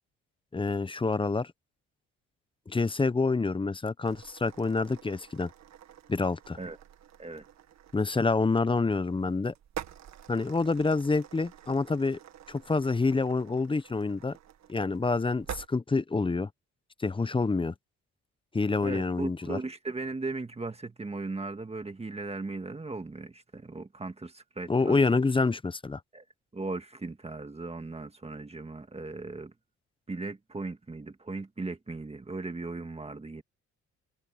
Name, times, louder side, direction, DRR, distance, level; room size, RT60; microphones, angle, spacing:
voice 1, 0.5-1.5 2.7-5.5 6.1-6.6 7.9-9.5 10.3-12.2 12.5-14.4 14.7-16.5 17.0-17.7 18.5-19.6 24.7-26.0, left 3 dB, 15° left, 0.7 m, -27 dB
sound 1, 4.0-15.7, right 10 dB, 65° right, 1.9 m, -48 dB
voice 2, 18.8-25.2 26.1-26.2 26.5-29.5 30.1-33.4, right 3 dB, 20° right, 1.9 m, -37 dB
cardioid pair, 90°, 30 cm